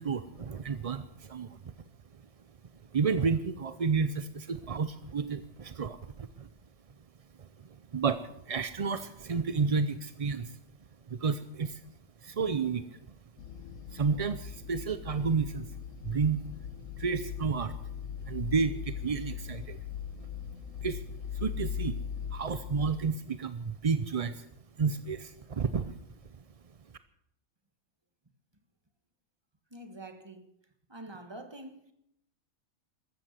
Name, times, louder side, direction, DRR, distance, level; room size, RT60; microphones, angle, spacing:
voice 1, 0.0-1.6 2.9-6.5 7.4-7.5 7.9-10.6 11.1-11.8 12.2-12.8 13.9-15.7 16.0-16.5 17.0-17.8 18.2-19.8 20.2-20.3 20.8-21.0 21.3-22.0 22.3-24.5 24.8-26.0, right 5 dB, 45° right, 0.4 m, -31 dB
sound 1, 13.4-23.0, left 8 dB, 70° left, 1.2 m, -39 dB
voice 2, 29.7-30.5 30.9-31.9, right 1 dB, 20° right, 1.5 m, -46 dB
14.0 x 14.0 x 6.6 m
omnidirectional pair, 1.4 m